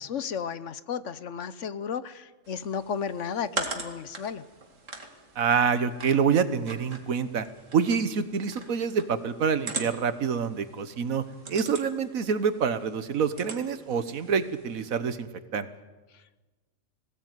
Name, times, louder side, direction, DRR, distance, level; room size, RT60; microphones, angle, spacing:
voice 1, 0.0-4.4, left 7 dB, 65° left, 15 dB, 1.2 m, -33 dB
sound 1, 2.5-15.0, right 3 dB, 65° right, 2.7 m, -42 dB
voice 2, 5.4-7.5 7.7-11.2 11.5-15.7, right 6 dB, 90° right, 12 dB, 1.6 m, -26 dB
21.0 x 17.0 x 9.3 m, 1.2 s
omnidirectional pair, 1.4 m